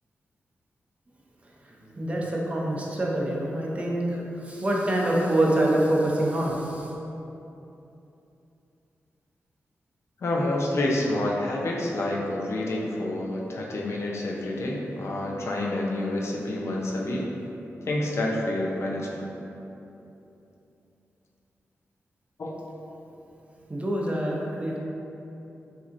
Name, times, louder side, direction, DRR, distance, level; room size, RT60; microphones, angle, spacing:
voice 1, 1.6-6.9 23.7-24.8, right 1 dB, 25° right, -3 dB, 0.7 m, -26 dB
voice 2, 10.2-17.3 17.9-19.3 22.4-22.5, left 1 dB, 65° left, -2 dB, 0.6 m, -28 dB
6.0 x 2.8 x 2.6 m, 2.9 s
wide cardioid pair, 95°, 5 cm